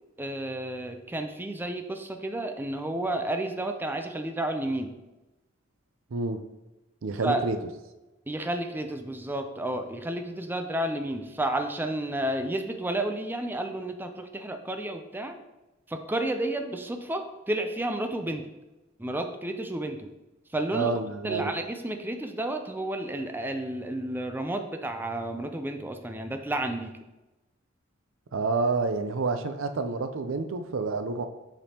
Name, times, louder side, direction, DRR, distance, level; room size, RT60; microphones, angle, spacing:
voice 1, 0.2-4.9 7.2-7.4 8.3-15.3 15.9-18.4 19.0-20.1 20.5-20.9 21.2-26.9, right 1 dB, 10° right, 6 dB, 0.4 m, -31 dB
voice 2, 7.0-7.6 20.7-21.5 28.3-31.2, right 3 dB, 90° right, 8 dB, 0.5 m, -28 dB
7.1 x 5.2 x 2.9 m, 1.0 s
head